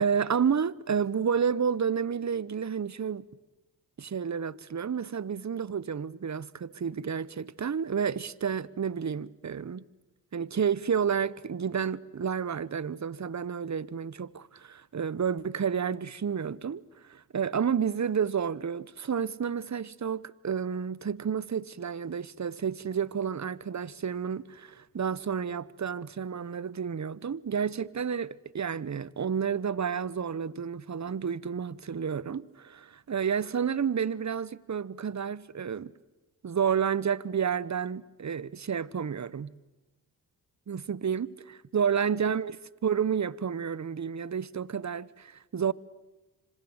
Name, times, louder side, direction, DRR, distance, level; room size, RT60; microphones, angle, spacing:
voice 1, 0.0-3.2 4.0-9.8 10.3-35.9 36.4-39.5 40.7-45.7, right 7 dB, 35° right, 1.1 m, -30 dB
26.5 x 26.0 x 8.1 m
supercardioid pair, 40°, 46 cm